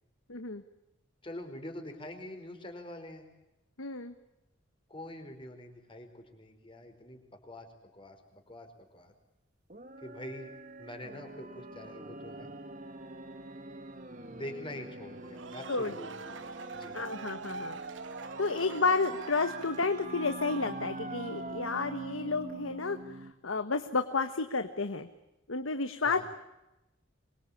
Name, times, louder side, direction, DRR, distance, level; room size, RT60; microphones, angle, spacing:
voice 1, 0.3-0.6 3.8-4.1 15.7-15.9 16.9-17.8 18.4-23.0 23.4-25.1 25.5-26.3, left 4 dB, 90° left, 9 dB, 1.4 m, -31 dB
voice 2, 1.2-3.2 4.9-7.7 7.9-9.1 10.0-10.5 10.8-12.5 14.3-16.4 16.7-17.0 26.0-26.3, left 1 dB, 25° left, 5 dB, 4.7 m, -45 dB
sound 1, 9.7-23.3, right 2 dB, 40° right, 2.1 m, -44 dB
sound 2, 15.2-20.2, right 4 dB, 65° right, 1.1 m, -44 dB
26.5 x 23.0 x 8.7 m, 0.95 s
head